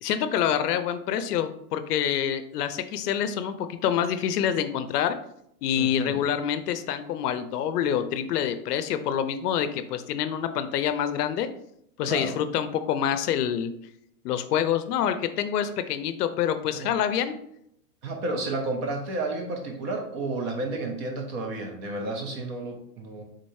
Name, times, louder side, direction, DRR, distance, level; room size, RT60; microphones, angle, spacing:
voice 1, 0.0-5.2 5.6-11.5 12.0-13.7 14.2-17.4, left 9 dB, 85° left, 10 dB, 0.6 m, -26 dB
voice 2, 5.8-6.2 12.0-12.4 16.7-16.9 18.0-23.2, right 2 dB, 30° right, 3 dB, 0.5 m, -31 dB
3.8 x 3.1 x 2.6 m, 0.74 s
supercardioid pair, 140°, 46 cm